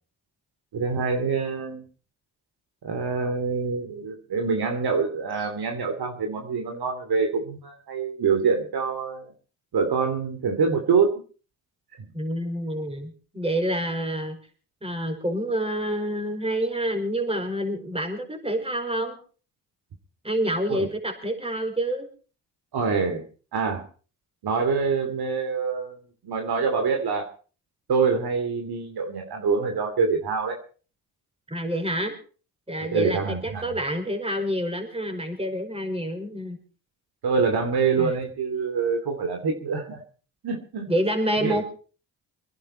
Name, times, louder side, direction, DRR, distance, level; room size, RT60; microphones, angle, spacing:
voice 1, 0.7-1.8 2.8-9.3 9.7-11.1 20.7-20.9 22.7-23.2 23.5-23.8 24.4-26.0 26.2-27.3 27.9-30.6 32.9-33.7 37.2-40.0 40.4-40.9 41.4-41.6, right 5 dB, 60° right, 4 dB, 2.9 m, -25 dB
voice 2, 12.1-14.4 14.8-19.2 20.2-22.1 31.5-32.1 32.7-36.6 38.0-38.1 40.9-41.6, right 1 dB, 15° right, 4 dB, 5.3 m, -27 dB
24.0 x 10.5 x 4.3 m, 0.39 s
supercardioid pair, 60°, 42 cm